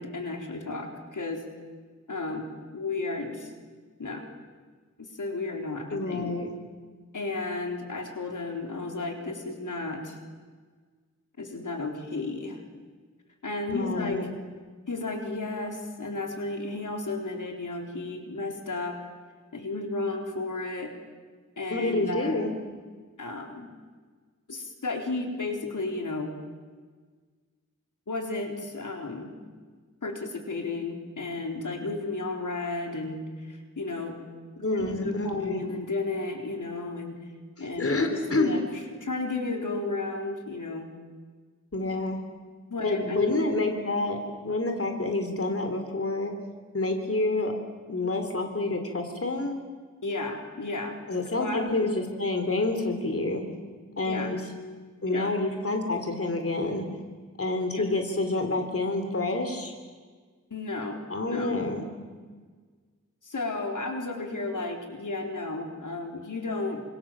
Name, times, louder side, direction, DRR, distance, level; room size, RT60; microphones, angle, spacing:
voice 1, 0.0-1.4 2.1-2.4 2.7-3.5 4.0-4.3 5.0-6.3 7.1-10.2 11.4-12.6 13.4-14.2 14.9-19.0 19.5-20.9 21.6-22.4 23.2-23.7 24.5-26.3 28.1-29.3 30.0-34.1 34.7-37.1 37.6-40.9 42.7-43.7 50.0-51.0 51.4-51.9 54.0-54.4 55.1-55.3 57.7-57.8 60.5-61.6 63.2-66.8, left 3 dB, 80° left, 3 dB, 4.1 m, -33 dB
voice 2, 5.9-6.5 13.7-14.3 21.7-22.5 34.6-35.6 37.8-38.5 41.7-42.2 42.8-44.2 44.4-46.3 46.7-47.5 47.9-49.6 51.1-53.4 54.0-54.4 55.0-56.9 57.4-59.7 61.1-61.8, left 2 dB, 45° left, 5 dB, 3.6 m, -28 dB
28.0 x 26.5 x 7.6 m, 1.5 s
wide cardioid pair, 75°, 31 cm